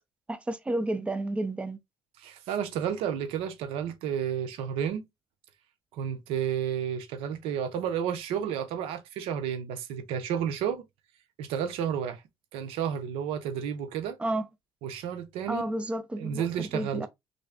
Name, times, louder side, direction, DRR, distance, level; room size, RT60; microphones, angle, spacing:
voice 1, 0.3-1.8 14.2-14.5 15.5-17.1, right 1 dB, 10° right, 0.5 m, -31 dB
voice 2, 2.2-5.0 5.9-10.8 11.4-12.2 12.5-14.2 14.8-15.6 16.2-17.1, right 8 dB, 90° right, 0.6 m, -31 dB
3.2 x 2.6 x 3.4 m
cardioid pair, 100°, 9 cm